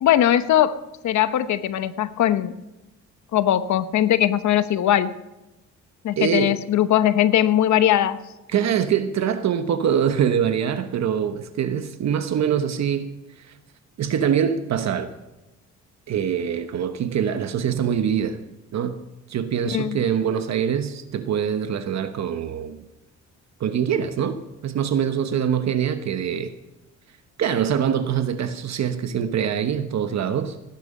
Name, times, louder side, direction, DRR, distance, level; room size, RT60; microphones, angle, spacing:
voice 1, 0.0-2.6 3.3-5.1 6.0-8.2 19.7-20.0, left 11 dB, 70° left, 1.0 m, -20 dB
voice 2, 6.2-6.6 8.5-13.1 13.4-13.5 14.0-15.1 16.1-18.4 18.7-19.0 19.3-22.8 23.6-26.5 27.4-30.6, right 8 dB, 60° right, 1.1 m, -24 dB
18.5 x 10.5 x 5.4 m
cardioid pair, 90°, 30 cm